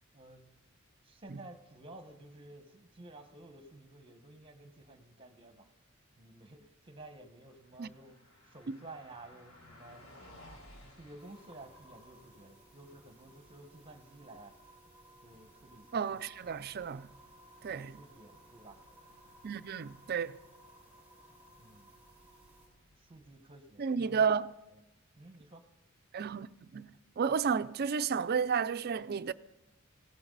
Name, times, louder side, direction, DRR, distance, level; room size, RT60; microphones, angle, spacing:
voice 1, 0.1-0.5 1.0-5.7 6.2-10.1 10.8-14.5 15.2-16.2 17.6-18.8 21.6-21.9 23.0-24.3 24.7-24.8 25.2-25.6, right 2 dB, 25° right, 1.4 m, -53 dB
Car passing by, 7.3-23.5, left 1 dB, 80° left, 3.6 m, -61 dB
sound 1, 11.2-22.7, right 1 dB, 10° right, 5.9 m, -59 dB
voice 2, 15.9-17.1 17.6-17.9 19.4-20.4 23.8-24.5 26.1-29.3, right 6 dB, 50° right, 0.4 m, -32 dB
19.0 x 16.0 x 4.1 m
head